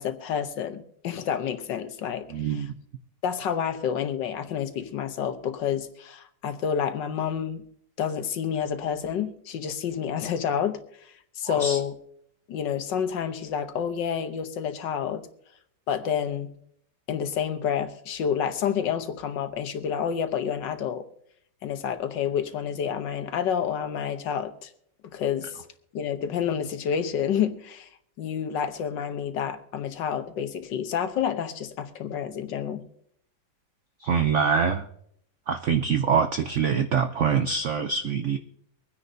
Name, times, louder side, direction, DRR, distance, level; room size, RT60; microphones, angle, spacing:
voice 1, 0.0-2.6 3.2-7.6 8.0-10.8 11.4-11.9 12.5-15.3 15.9-16.5 17.1-21.1 21.6-24.7 25.1-25.6 25.9-27.9 28.2-32.8, left 8 dB, 70° left, 9 dB, 1.5 m, -29 dB
voice 2, 2.3-2.7 11.4-11.8 34.0-34.9 35.5-38.4, right 6 dB, 80° right, 8 dB, 0.6 m, -24 dB
24.0 x 9.9 x 2.7 m, 0.69 s
omnidirectional pair, 2.1 m